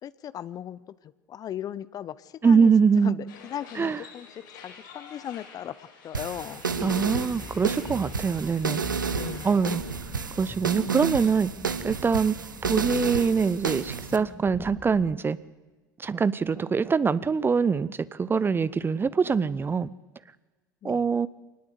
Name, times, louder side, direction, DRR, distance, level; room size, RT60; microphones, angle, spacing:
voice 1, 0.0-2.7 3.0-6.6 9.0-9.5 20.8-21.0, left 10 dB, 35° left, 18 dB, 0.8 m, -38 dB
voice 2, 2.4-3.2 3.8-4.0 6.8-8.8 9.4-9.8 10.4-11.5 11.8-15.4 16.0-19.9 20.8-21.3, right 5 dB, 20° right, 18 dB, 0.7 m, -24 dB
sound 1, 3.3-9.5, left 6 dB, 75° left, 7.0 m, -49 dB
sound 2, 6.1-14.2, right 6 dB, 85° right, 1.1 m, -31 dB
sound 3, 6.7-15.2, left 3 dB, 15° left, 1.9 m, -43 dB
25.0 x 19.0 x 8.1 m, 1.2 s
figure-of-eight pair, 75°, 10 cm